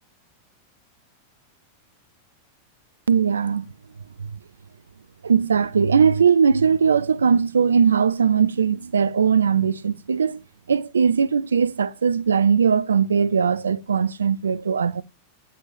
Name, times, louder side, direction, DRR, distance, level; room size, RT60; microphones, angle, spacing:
voice 1, 3.1-3.7 5.2-10.4 10.7-15.0, right 6 dB, 70° right, 0.3 m, -19 dB
7.9 x 5.6 x 3.0 m
figure-of-eight pair, 90°, 0 cm